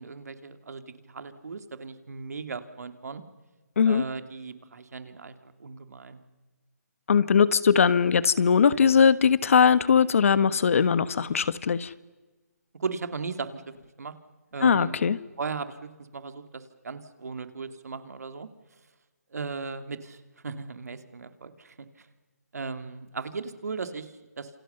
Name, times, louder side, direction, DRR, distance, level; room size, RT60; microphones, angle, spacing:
voice 1, 0.0-3.2 3.8-6.2 12.7-13.6 14.0-14.1 14.5-15.0 15.4-18.5 19.3-22.1 22.5-24.6, right 4 dB, 70° right, 9 dB, 2.5 m, -37 dB
voice 2, 7.1-11.9 14.6-15.2, left 6 dB, 55° left, 16 dB, 1.2 m, -20 dB
28.0 x 27.5 x 6.7 m, 1.2 s
hypercardioid pair, 160°, 9 cm